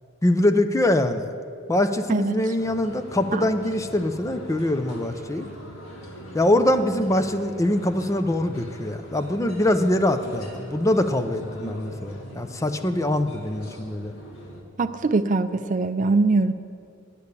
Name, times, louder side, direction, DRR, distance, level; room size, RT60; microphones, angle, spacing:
voice 1, 0.2-1.3 1.7-5.5 6.3-14.1, left 1 dB, 15° left, 8 dB, 0.5 m, -23 dB
sound 1, 2.6-14.6, equal, 80° left, 2.0 m, -41 dB
voice 2, 14.8-16.5, right 3 dB, 40° right, 11 dB, 0.4 m, -22 dB
9.8 x 8.5 x 8.3 m, 2.4 s
head